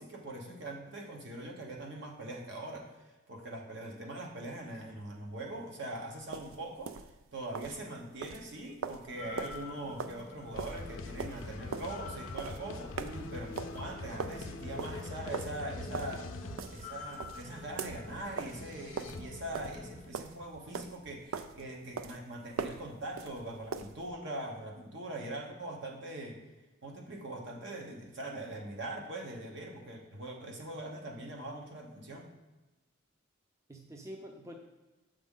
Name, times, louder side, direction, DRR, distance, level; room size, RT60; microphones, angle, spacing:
voice 1, 0.0-6.9 7.3-13.0 13.3-26.4 26.8-32.3, right 1 dB, 60° right, 1 dB, 1.1 m, -42 dB
sound 1, 6.2-24.1, right 5 dB, 85° right, 0.4 m, -43 dB
sound 2, 9.1-20.1, left 3 dB, 35° left, 0.7 m, -48 dB
sound 3, 10.5-16.8 18.5-19.8, left 3 dB, 80° left, 0.5 m, -44 dB
voice 2, 13.0-13.4 33.7-34.6, right 1 dB, 15° right, 1 dB, 0.5 m, -45 dB
7.2 x 5.1 x 3.7 m, 1.1 s
head